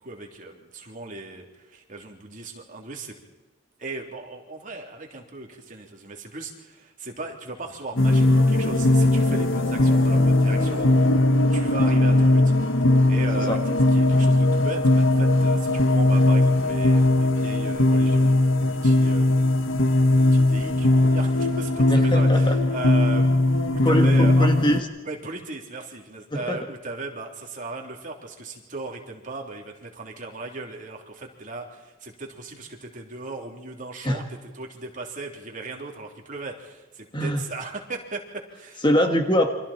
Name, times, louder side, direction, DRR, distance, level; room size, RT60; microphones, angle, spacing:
voice 1, 0.0-3.1 3.8-11.1 11.5-19.5 20.1-24.5 25.0-34.2 34.5-38.8, right 3 dB, 40° right, 1 dB, 3.3 m, -37 dB
sound 1, 8.0-24.8, left 2 dB, 75° left, 1.2 m, -19 dB
voice 2, 21.9-22.5 23.8-24.8 26.3-26.6 34.0-34.2 37.1-37.4 38.8-39.5, equal, 25° left, 4 dB, 1.7 m, -23 dB
29.0 x 24.5 x 4.4 m, 1.2 s
head